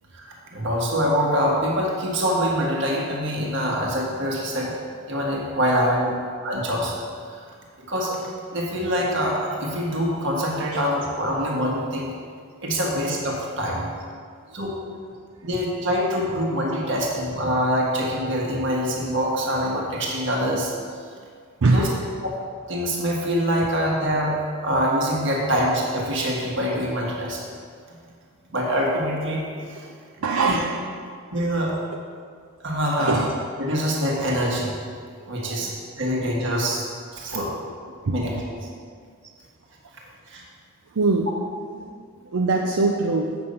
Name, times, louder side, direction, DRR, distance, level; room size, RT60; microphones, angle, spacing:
voice 1, 0.1-4.8 5.1-6.1 6.4-7.0 7.3-7.4 7.9-12.1 12.6-13.8 14.5-14.8 15.4-20.7 21.7-21.9 22.2-22.3 22.7-27.5 28.5-29.9 31.3-31.8 32.6-33.2 33.6-34.7 35.3-35.7 36.0-36.8 37.1-37.5 38.1-38.3 40.3-40.5, equal, 55° right, -2 dB, 1.6 m, -24 dB
voice 2, 21.6-21.9 30.2-30.8 33.0-33.3 35.2-35.8 37.3-37.4 38.0-38.2 40.9-41.3 41.8-43.3, right 3 dB, 75° right, 1 dB, 0.6 m, -23 dB
7.8 x 6.7 x 5.4 m, 2.1 s
head